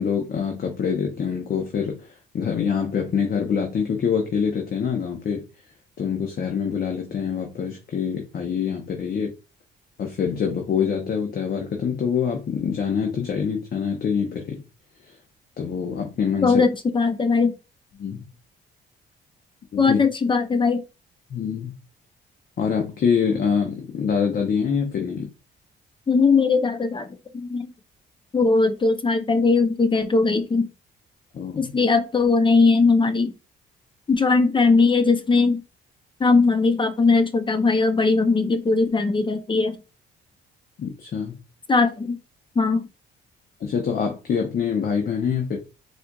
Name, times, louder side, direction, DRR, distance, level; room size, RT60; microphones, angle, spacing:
voice 1, 0.0-5.4 6.0-9.3 10.0-14.6 15.6-16.6 18.0-18.2 19.7-20.0 21.3-21.7 22.6-25.3 31.3-31.7 40.8-41.4 43.6-45.6, left 6 dB, 50° left, 2 dB, 0.8 m, -25 dB
voice 2, 16.4-17.5 19.8-20.8 26.1-27.1 27.3-27.7 28.3-30.7 31.6-33.3 34.1-35.6 36.2-39.8 41.7-42.2 42.6-42.9, left 4 dB, 25° left, 9 dB, 0.5 m, -19 dB
4.3 x 2.5 x 2.3 m, 0.29 s
cardioid pair, 90°, 20 cm